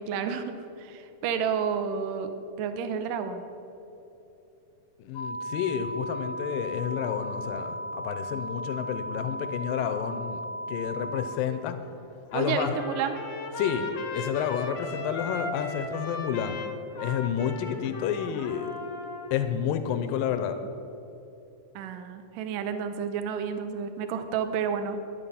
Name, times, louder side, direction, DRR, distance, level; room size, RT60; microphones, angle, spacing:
voice 1, 0.0-2.3 2.6-3.5 12.3-13.2 21.8-25.0, right 7 dB, 75° right, 8 dB, 2.4 m, -30 dB
voice 2, 5.0-10.4 10.7-11.8 12.3-12.8 13.6-13.9 14.1-16.6 17.0-18.7 19.3-20.6, left 8 dB, 90° left, 9 dB, 2.4 m, -30 dB
sound 1, 5.1-11.3, equal, 70° left, 1.2 m, -36 dB
Trumpet, 12.3-19.4, left 2 dB, 50° left, 1.4 m, -37 dB
12.5 x 11.0 x 5.7 m, 2.9 s
omnidirectional pair, 4.0 m